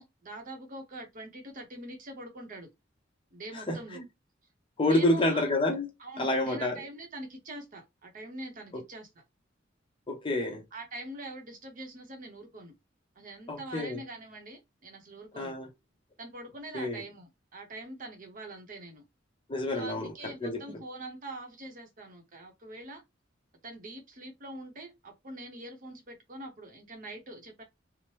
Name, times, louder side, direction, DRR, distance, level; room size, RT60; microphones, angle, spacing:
voice 1, 0.0-2.7 3.3-4.0 4.8-5.4 6.0-9.1 10.7-12.7 13.2-15.6 16.2-19.0 19.7-23.0 23.6-27.6, right 1 dB, 45° right, 0.8 m, -44 dB
voice 2, 3.7-4.0 4.8-5.9 6.2-6.8 10.1-10.6 13.5-14.0 15.4-15.7 16.7-17.0 19.5-20.8, left 1 dB, 25° left, 0.7 m, -28 dB
2.8 x 2.1 x 3.1 m
head